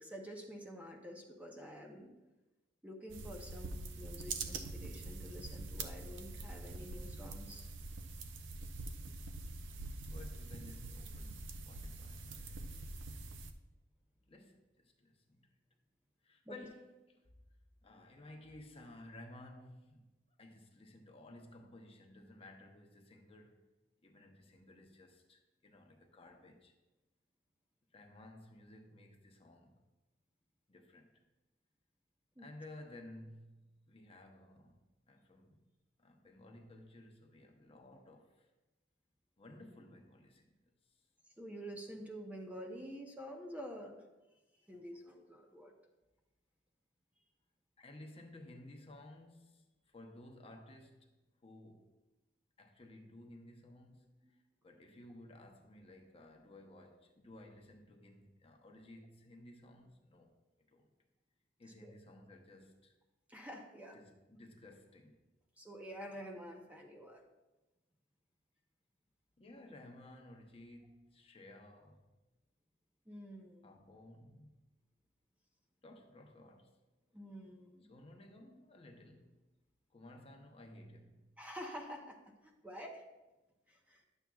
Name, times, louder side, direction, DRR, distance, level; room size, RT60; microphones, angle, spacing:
voice 1, 0.0-2.1 2.8-7.7 16.5-16.6 32.4-32.5 41.4-44.0 44.7-45.7 61.8-61.9 63.3-64.0 65.6-67.2 73.1-73.8 77.1-78.0 81.4-82.2 82.6-83.0 83.7-84.0, equal, 10° right, 0.7 m, -48 dB
sound 1, 3.1-13.5, right 3 dB, 70° right, 0.5 m, -45 dB
voice 2, 10.1-12.8 14.3-15.5 16.2-17.2 17.8-20.1 20.4-23.6 24.0-26.7 27.9-29.8 30.7-31.2 32.4-34.8 35.1-35.6 36.0-38.5 39.4-40.6 47.8-51.1 51.4-51.9 52.6-54.1 54.6-60.3 60.7-60.8 61.6-62.9 63.9-65.2 69.4-72.1 73.6-74.5 75.8-76.7 77.9-79.4 79.9-81.3, left 1 dB, 30° left, 0.8 m, -56 dB
10.5 x 7.3 x 2.3 m
head